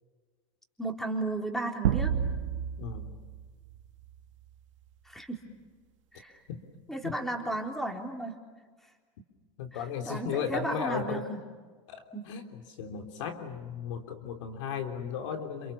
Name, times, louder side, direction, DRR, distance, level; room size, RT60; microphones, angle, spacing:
voice 1, 0.8-2.2 5.1-5.4 6.1-6.4 6.9-8.4 10.1-11.4 12.1-12.3, right 2 dB, ahead, 3 dB, 4.0 m, -34 dB
sound 1, 1.8-4.4, right 8 dB, 80° right, 1.7 m, -31 dB
voice 2, 2.8-3.1 6.5-6.6 7.0-7.1 9.6-11.2 11.9-15.7, left 7 dB, 75° left, 6 dB, 3.6 m, -35 dB
29.5 x 28.0 x 7.1 m, 1.5 s
hypercardioid pair, 110°, 16 cm